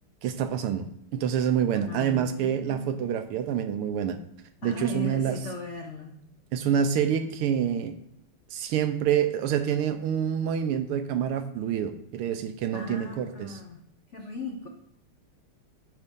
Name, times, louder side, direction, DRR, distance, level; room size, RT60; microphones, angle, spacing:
voice 1, 0.2-0.9 1.1-4.2 4.6-5.4 6.5-7.9 8.5-13.6, right 9 dB, 85° right, 9 dB, 1.6 m, -27 dB
voice 2, 1.8-3.0 4.6-6.1 12.7-13.8 14.1-14.7, left 2 dB, 75° left, 2 dB, 0.6 m, -37 dB
9.8 x 3.5 x 5.3 m, 0.69 s
omnidirectional pair, 2.4 m